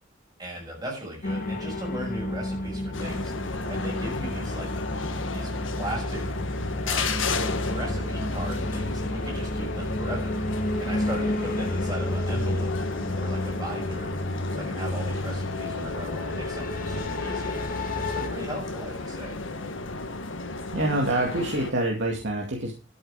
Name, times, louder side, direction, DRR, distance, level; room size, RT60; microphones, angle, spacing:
voice 1, 0.4-4.7 5.3-6.2 6.9-7.1 7.7-10.4 10.8-12.8 13.2-14.1 14.5-17.7 17.9-19.4, right 1 dB, 20° right, -1 dB, 6.3 m, -37 dB
sound 1, 1.2-18.3, left 1 dB, 45° left, 2.3 m, -31 dB
sound 2, 2.9-21.7, left 3 dB, 75° left, 1.6 m, -33 dB
voice 2, 20.7-22.7, right 1 dB, 65° right, 0 dB, 2.3 m, -26 dB
12.5 x 8.9 x 4.9 m, 0.32 s
head